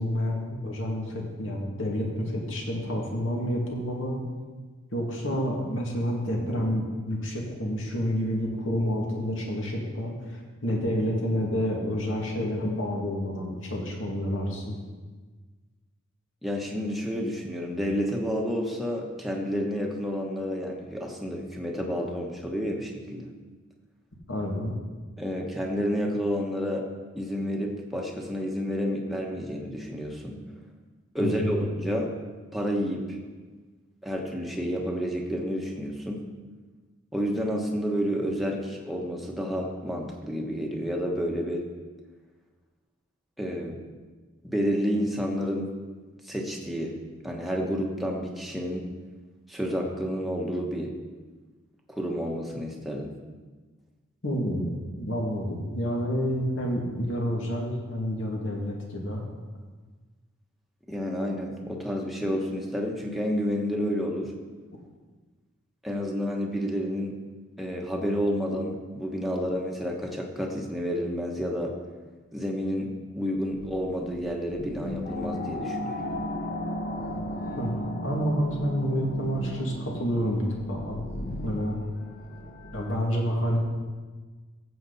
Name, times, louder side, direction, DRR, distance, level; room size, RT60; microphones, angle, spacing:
voice 1, 0.0-4.2 4.9-14.8 24.3-24.7 31.2-31.6 54.2-54.7 55.0-59.2 77.5-77.7 78.0-81.0 81.4-81.8 82.7-83.6, equal, 70° left, -1 dB, 2.4 m, -29 dB
voice 2, 16.4-23.3 25.2-26.9 27.2-30.4 31.1-32.1 32.5-33.2 34.0-36.2 37.1-41.6 43.4-43.8 44.4-45.7 46.2-46.9 47.2-48.9 49.5-50.9 51.9-53.1 60.9-64.3 65.8-67.2 67.6-71.7 72.3-76.0, equal, ahead, -1 dB, 1.2 m, -30 dB
sound 1, 73.4-83.0, equal, 45° left, 1.0 m, -35 dB
15.0 x 7.7 x 4.1 m, 1.4 s
head